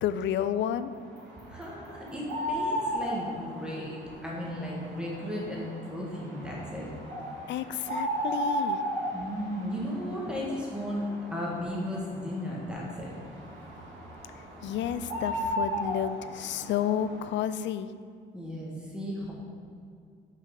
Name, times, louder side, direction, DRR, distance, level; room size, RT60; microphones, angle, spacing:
voice 1, 0.0-0.9 7.5-8.8 14.6-17.9, left 10 dB, 65° left, 13 dB, 0.4 m, -31 dB
sound 1, 0.9-17.3, equal, 75° right, 1.7 m, -36 dB
voice 2, 1.5-6.9 9.1-13.1 18.3-19.3, equal, 5° right, -4 dB, 1.5 m, -35 dB
5.6 x 5.5 x 5.2 m, 2.3 s
cardioid pair, 90°, 20 cm